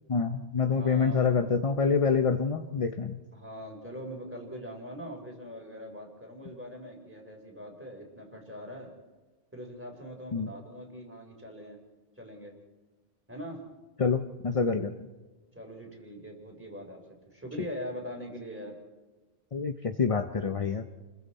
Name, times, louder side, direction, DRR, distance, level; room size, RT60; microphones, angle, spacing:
voice 1, 0.1-3.2 10.3-10.5 14.0-15.1 19.5-20.8, left 5 dB, 35° left, 7 dB, 0.7 m, -27 dB
voice 2, 0.7-1.6 3.3-8.9 9.5-11.8 12.2-12.5 13.3-13.6 15.5-17.0 17.3-18.8, equal, 10° right, 1 dB, 3.7 m, -42 dB
30.0 x 21.5 x 4.2 m, 1.2 s
omnidirectional pair, 1.2 m